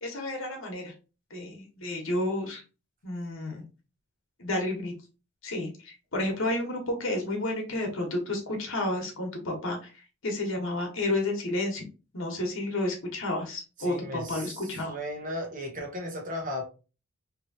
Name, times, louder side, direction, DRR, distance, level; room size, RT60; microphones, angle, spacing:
voice 1, 0.0-0.9 1.3-2.6 3.0-3.6 4.4-4.9 5.4-9.9 10.2-11.8 12.1-14.9, left 1 dB, 65° left, 1.1 m, -31 dB
voice 2, 13.8-16.6, left 1 dB, 40° right, 0.8 m, -36 dB
3.1 x 2.8 x 2.7 m
head